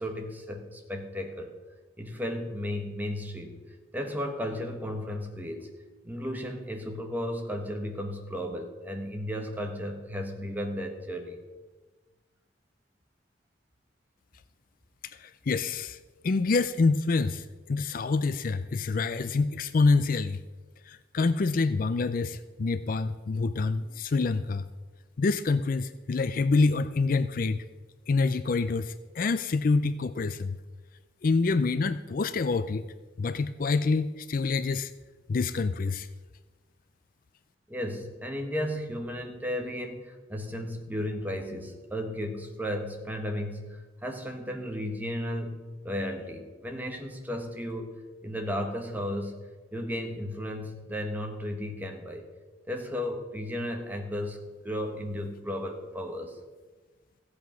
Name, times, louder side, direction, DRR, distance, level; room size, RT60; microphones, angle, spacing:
voice 1, 0.0-1.5 2.0-3.6 3.9-5.7 6.0-11.4 37.7-48.0 48.2-49.4 49.7-52.3 52.7-56.4, equal, 10° right, 3 dB, 1.5 m, -34 dB
voice 2, 15.2-16.0 16.2-20.4 20.9-24.6 25.2-27.6 28.1-30.6 31.2-32.8 33.2-34.9 35.3-36.1, left 3 dB, 50° left, 13 dB, 0.4 m, -26 dB
15.0 x 8.3 x 6.2 m, 1.3 s
head